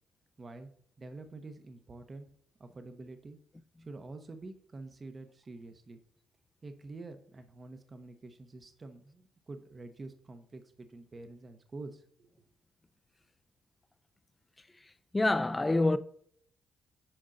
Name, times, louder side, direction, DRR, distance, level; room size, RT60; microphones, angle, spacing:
voice 1, 0.4-0.7 1.0-2.3 2.6-3.4 3.8-6.0 6.6-12.5, right 3 dB, 35° right, 0.7 m, -47 dB
voice 2, 15.1-16.0, left 2 dB, 15° left, 0.4 m, -26 dB
8.6 x 5.3 x 2.5 m
cardioid pair, 90°, 0 cm